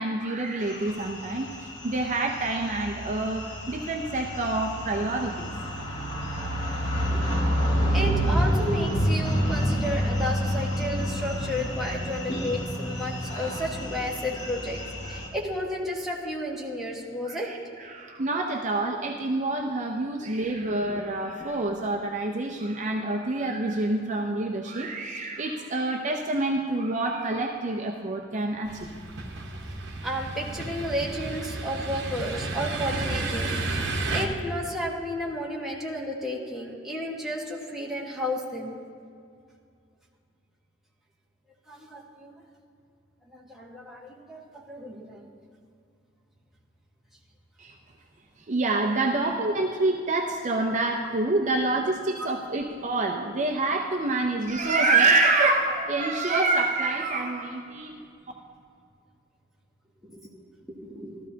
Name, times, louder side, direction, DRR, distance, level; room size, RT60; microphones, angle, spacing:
voice 1, 0.0-5.5 11.9-12.0 14.4-14.5 15.0-15.2 17.3-28.9 47.6-47.7 48.5-58.0, right 2 dB, 40° right, 2 dB, 0.6 m, -27 dB
sound 1, 0.7-15.3, equal, 70° left, 1.7 m, -29 dB
voice 2, 7.7-14.8 15.1-17.5 30.0-33.5 34.1-38.8 41.7-42.3 43.3-45.3 60.0-60.2 60.7-61.2, equal, ahead, -4 dB, 1.5 m, -32 dB
sound 2, 28.7-34.3, right 2 dB, 60° right, 1.1 m, -32 dB
14.5 x 13.0 x 2.8 m, 2.3 s
head